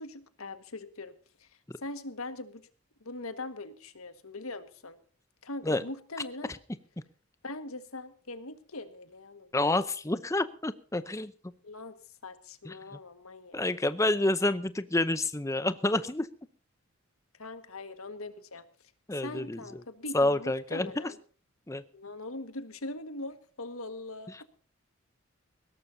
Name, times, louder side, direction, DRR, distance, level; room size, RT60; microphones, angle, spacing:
voice 1, 0.0-2.6 3.0-5.0 5.4-6.5 7.4-9.5 11.6-12.0 12.2-13.6 17.4-18.6 19.1-21.2 21.9-24.4, left 2 dB, 90° left, 10 dB, 1.7 m, -41 dB
voice 2, 9.5-11.3 12.7-12.8 13.5-16.3 19.1-19.6 20.1-20.9 21.7-21.8, left 2 dB, 15° left, 13 dB, 0.6 m, -28 dB
21.0 x 17.5 x 2.7 m, 0.41 s
head